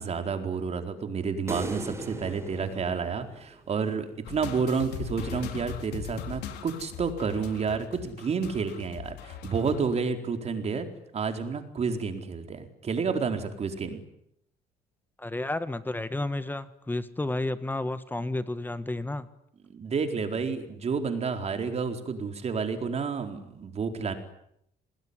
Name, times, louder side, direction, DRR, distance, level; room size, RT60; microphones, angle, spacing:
voice 1, 0.0-10.9 11.1-14.0 19.7-24.1, right 5 dB, 40° right, 6 dB, 4.4 m, -30 dB
sound 1, 1.5-3.9, right 2 dB, 15° right, 4.3 m, -38 dB
sound 2, 4.2-9.9, left 8 dB, 80° left, 3.8 m, -40 dB
voice 2, 15.2-19.3, left 2 dB, 10° left, 13 dB, 1.6 m, -31 dB
28.5 x 20.5 x 9.9 m, 0.75 s
cardioid pair, 110°, 17 cm